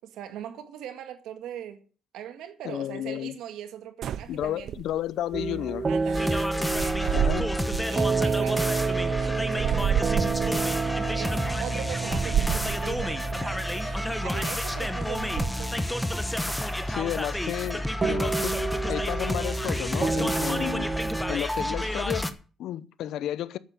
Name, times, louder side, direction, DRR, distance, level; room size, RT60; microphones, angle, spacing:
voice 1, 0.0-1.8 2.1-4.7 5.9-6.3 6.7-7.0 7.9-10.2 11.1-13.9 14.2-15.8, right 10 dB, 85° right, 1.8 m, -40 dB
voice 2, 2.6-3.4 4.3-5.9 7.1-7.5 16.9-18.5 18.8-20.9 21.3-23.6, left 12 dB, 80° left, 0.6 m, -32 dB
sound 1, 4.0-5.2 6.1-8.0 8.4-10.7 11.3-11.4 12.0-13.2 13.7-14.1 14.5-15.8, right 9 dB, 70° right, 0.5 m, -31 dB
sound 2, 5.3-21.4, right 4 dB, 35° right, 0.9 m, -30 dB
sound 3, 6.1-22.3, left 1 dB, 10° left, 1.1 m, -30 dB
8.6 x 8.0 x 8.9 m
cardioid pair, 90°, 0 cm